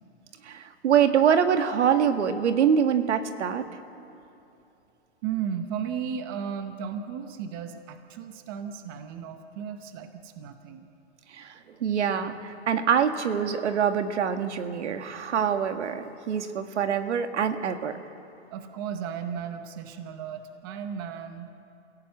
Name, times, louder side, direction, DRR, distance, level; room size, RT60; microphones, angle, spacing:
voice 1, 0.4-3.7 11.3-18.0, right 8 dB, 85° right, 7 dB, 1.9 m, -25 dB
voice 2, 5.2-10.9 18.5-21.5, right 7 dB, 20° right, 7 dB, 0.8 m, -35 dB
29.0 x 16.5 x 8.7 m, 2.8 s
hypercardioid pair, 175°, 34 cm